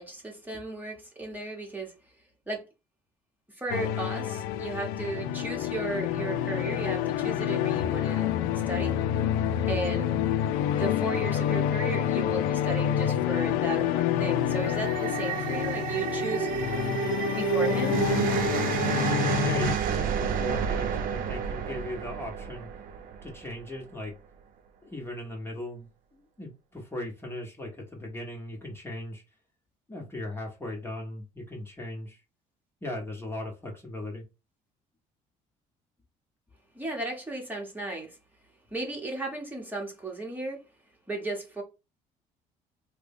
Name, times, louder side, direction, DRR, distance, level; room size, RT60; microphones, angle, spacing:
voice 1, 0.0-1.9 2.5-2.6 3.5-8.3 8.5-9.0 9.7-10.1 10.7-16.5 17.3-18.0 36.7-38.2 38.7-40.6 41.1-41.6, right 2 dB, 10° right, 1.2 m, -35 dB
sound 1, 3.7-19.7, left 10 dB, 85° left, 0.4 m, -28 dB
sound 2, 14.3-23.6, right 8 dB, 70° right, 0.5 m, -30 dB
voice 2, 19.4-22.7 23.2-24.1 24.8-29.2 29.9-32.2 32.8-34.2, left 1 dB, 15° left, 1.2 m, -38 dB
3.2 x 2.2 x 3.5 m
supercardioid pair, 85°, 15 cm